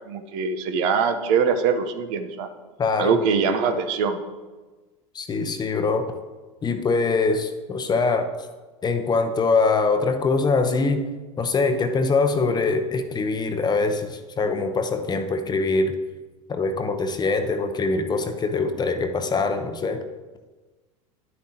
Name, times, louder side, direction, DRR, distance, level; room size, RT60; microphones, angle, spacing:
voice 1, 0.0-2.5 3.0-4.2, right 6 dB, 60° right, 8 dB, 0.9 m, -23 dB
voice 2, 2.8-3.2 5.1-6.0 6.6-8.3 8.8-11.0 11.4-15.9 16.5-20.0, left 4 dB, 25° left, 7 dB, 0.8 m, -23 dB
10.0 x 8.3 x 2.9 m, 1.3 s
hypercardioid pair, 100°, 18 cm